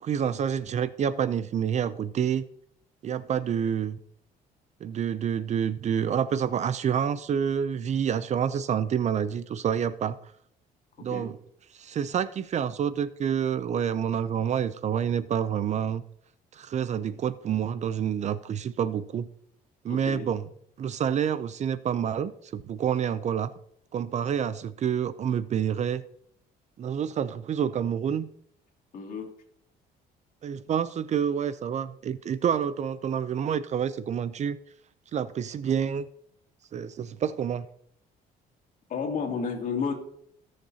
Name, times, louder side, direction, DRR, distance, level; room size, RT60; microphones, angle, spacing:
voice 1, 0.0-2.4 3.0-4.0 4.8-10.2 11.0-11.4 11.7-16.0 16.5-19.3 19.8-20.5 20.8-23.5 23.9-26.0 26.8-28.3 30.4-34.6 35.1-36.1 36.7-37.7, right 8 dB, 45° right, 15 dB, 0.5 m, -28 dB
voice 2, 19.9-20.3 28.9-29.3 38.9-39.9, left 5 dB, 55° left, 1 dB, 2.7 m, -31 dB
18.0 x 6.5 x 2.8 m, 0.70 s
cardioid pair, 110°, 17 cm